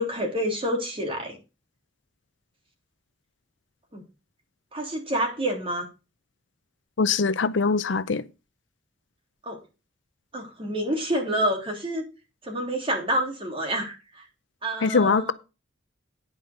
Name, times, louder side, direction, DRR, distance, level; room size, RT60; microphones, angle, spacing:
voice 1, 0.0-1.4 3.9-4.0 4.7-5.9 9.4-9.6 10.3-12.0 12.4-14.2 14.6-15.3, right 1 dB, 30° right, 3.2 m, -28 dB
voice 2, 7.0-8.2 14.8-15.3, left 4 dB, 70° left, 0.6 m, -22 dB
9.7 x 5.1 x 6.6 m
head